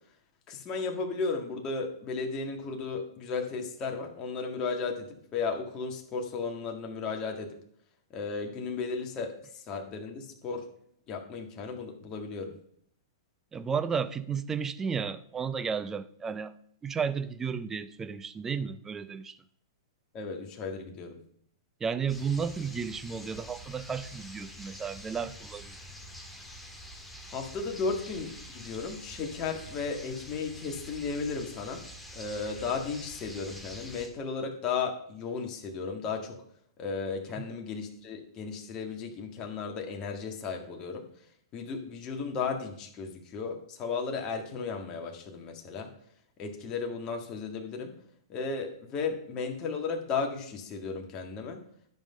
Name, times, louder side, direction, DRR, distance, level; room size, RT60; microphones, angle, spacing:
voice 1, 0.5-7.5 8.1-10.7 11.1-12.5 20.1-21.2 27.3-31.8 32.1-36.4 36.8-41.1 41.5-45.9 46.4-47.9 48.3-51.6, left 4 dB, 30° left, 3 dB, 1.8 m, -35 dB
voice 2, 13.5-16.5 16.8-19.4 21.8-25.8 37.4-37.5, right 6 dB, 15° right, 14 dB, 0.6 m, -33 dB
sound 1, 22.1-34.1, equal, 5° left, 1.8 m, -46 dB
11.5 x 5.6 x 5.5 m, 0.65 s
hypercardioid pair, 120°, 2 cm